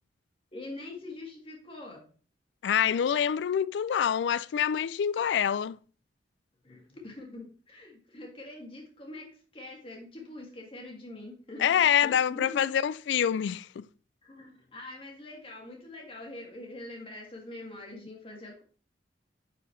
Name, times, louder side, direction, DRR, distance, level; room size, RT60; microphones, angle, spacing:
voice 1, 0.5-2.1 6.6-12.7 14.2-18.6, left 2 dB, 30° left, 2.2 m, -44 dB
voice 2, 2.6-5.8 11.6-13.9, left 8 dB, 80° left, 0.3 m, -26 dB
9.9 x 4.8 x 3.1 m
head